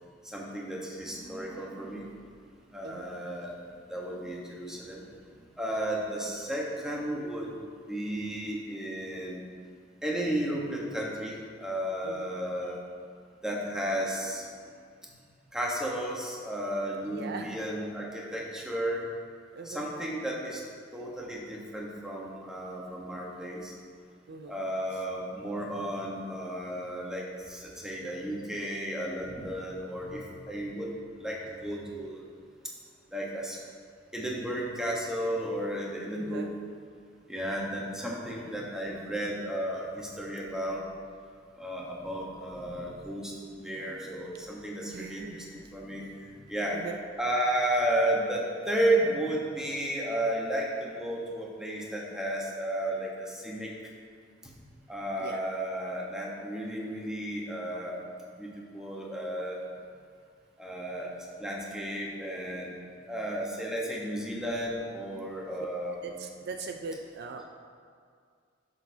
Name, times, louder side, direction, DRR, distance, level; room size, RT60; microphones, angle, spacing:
voice 1, 0.2-2.2 2.7-3.6 3.9-5.0 5.6-7.5 7.9-9.4 10.0-12.8 13.4-14.5 15.5-19.1 19.6-20.6 20.9-23.7 24.5-30.9 31.2-32.2 33.1-33.6 34.1-36.5 37.3-40.8 41.6-46.8 47.2-53.7 54.4-54.5 54.9-58.0 58.4-59.6 60.6-61.1 61.4-62.7 63.1-66.2, right 1 dB, 5° right, -3 dB, 1.1 m, -33 dB
voice 2, 17.0-17.6 19.5-19.8 24.3-24.5 36.1-36.5 44.8-45.6 46.7-47.0 55.2-55.4 66.0-67.4, right 4 dB, 55° right, 4 dB, 0.4 m, -40 dB
10.5 x 6.2 x 2.8 m, 2.2 s
head